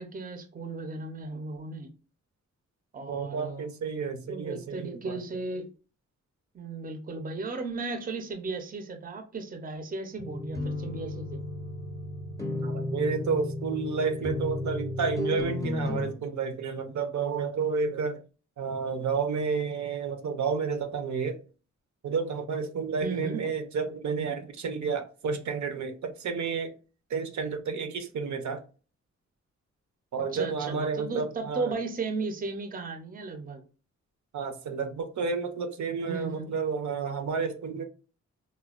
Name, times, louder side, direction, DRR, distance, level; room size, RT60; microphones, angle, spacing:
voice 1, 0.0-1.9 2.9-3.7 4.2-5.7 6.5-11.4 23.0-23.4 30.3-33.6 36.0-36.5, right 3 dB, 30° right, 0.5 m, -35 dB
voice 2, 3.1-5.2 12.6-18.2 18.6-21.4 22.0-26.7 27.1-28.6 30.1-31.8 34.3-37.8, right 5 dB, 75° right, 0.6 m, -31 dB
sound 1, 10.2-16.1, left 2 dB, 10° left, 0.6 m, -33 dB
4.1 x 2.2 x 2.3 m
wide cardioid pair, 165°, 29 cm